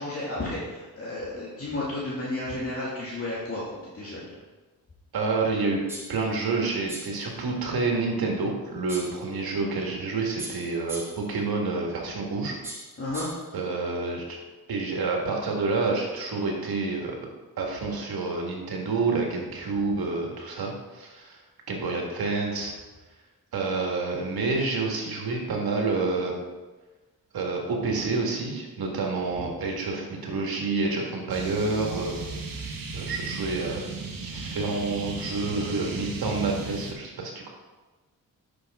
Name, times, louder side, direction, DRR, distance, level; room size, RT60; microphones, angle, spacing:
voice 1, 0.0-4.3 13.0-13.3, left 2 dB, 40° left, -7 dB, 2.3 m, -32 dB
voice 2, 5.1-5.8 6.1-12.5 13.5-14.4 14.7-17.3 17.6-21.4 21.7-22.7 23.5-26.3 27.3-32.2 32.9-33.8 34.2-37.5, right 3 dB, 90° right, 0 dB, 1.8 m, -28 dB
sound 1, 5.9-6.2 6.9-7.2 8.9-9.2 10.4-11.3 12.6-13.5, right 2 dB, 5° right, 1.6 m, -39 dB
sound 2, 31.3-36.9, right 3 dB, 65° right, 1.4 m, -36 dB
10.0 x 6.4 x 3.6 m, 1.2 s
wide cardioid pair, 100°, 36 cm